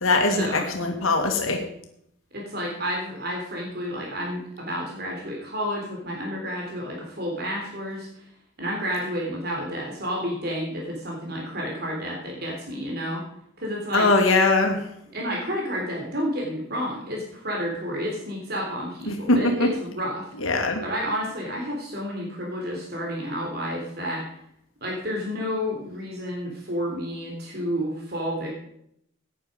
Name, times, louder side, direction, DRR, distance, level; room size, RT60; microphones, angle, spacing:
voice 1, 0.0-1.6 13.9-14.9 19.1-19.7 20.4-20.8, left 2 dB, 85° left, 3 dB, 2.1 m, -21 dB
voice 2, 2.3-8.2 8.6-13.2 13.6-14.1 15.1-20.3 20.8-24.3 24.8-28.5, equal, 50° right, -1 dB, 3.5 m, -30 dB
15.0 x 9.9 x 5.1 m, 0.72 s
head